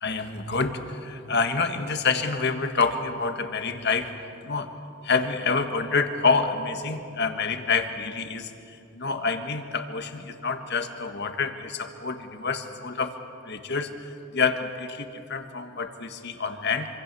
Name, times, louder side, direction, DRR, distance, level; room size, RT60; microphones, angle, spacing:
voice 1, 0.0-4.1 4.4-4.7 5.0-13.1 13.5-13.9 14.3-16.9, left 4 dB, 55° left, 7 dB, 1.7 m, -27 dB
27.0 x 25.5 x 7.0 m, 2.6 s
head